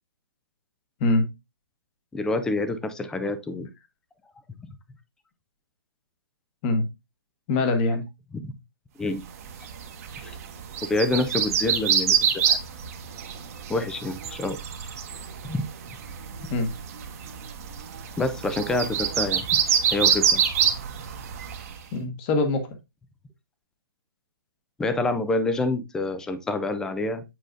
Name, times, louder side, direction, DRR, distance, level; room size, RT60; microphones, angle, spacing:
voice 1, 2.1-3.7 8.3-8.5 9.0-9.2 10.2-10.4 10.9-12.6 13.7-14.6 15.4-15.7 18.2-19.5 19.9-20.4 24.8-27.2, left 2 dB, 5° left, 0.4 m, -27 dB
voice 2, 7.5-8.0 16.5-16.7 21.9-22.8, left 2 dB, 30° left, 1.2 m, -23 dB
sound 1, 9.4-21.8, right 8 dB, 40° right, 0.9 m, -27 dB
7.6 x 4.8 x 2.5 m
hypercardioid pair, 145°, 12 cm